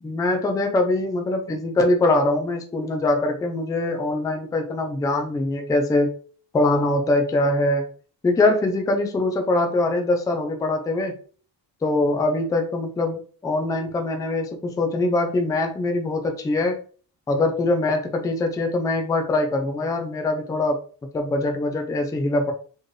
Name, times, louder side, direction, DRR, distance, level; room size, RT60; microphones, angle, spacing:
voice 1, 0.0-6.1 6.5-7.9 8.2-11.2 11.8-16.8 17.3-20.8 21.1-22.5, left 2 dB, 10° left, 4 dB, 0.3 m, -23 dB
4.3 x 3.2 x 3.1 m, 0.42 s
cardioid pair, 170°, 45 cm